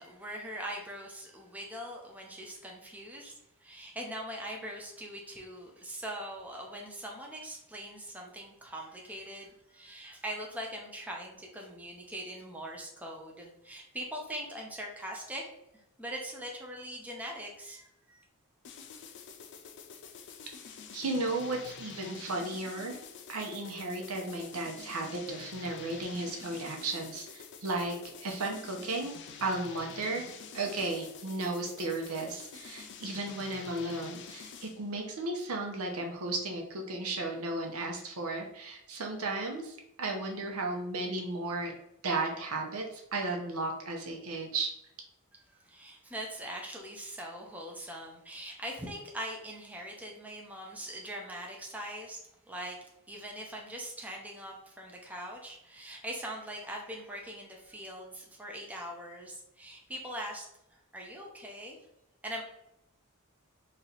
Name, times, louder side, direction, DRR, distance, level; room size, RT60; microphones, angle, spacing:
voice 1, 0.0-3.3 3.6-15.4 15.7-18.2 45.3-52.2 52.5-61.8 62.2-62.4, equal, 5° right, -1 dB, 0.6 m, -42 dB
sound 1, 18.6-34.9, left 6 dB, 55° left, 0.4 m, -48 dB
voice 2, 20.5-23.0 23.3-29.1 29.4-30.2 30.5-41.7 42.0-44.7, right 2 dB, 75° right, 1 dB, 0.8 m, -35 dB
3.2 x 2.8 x 3.9 m, 0.82 s
head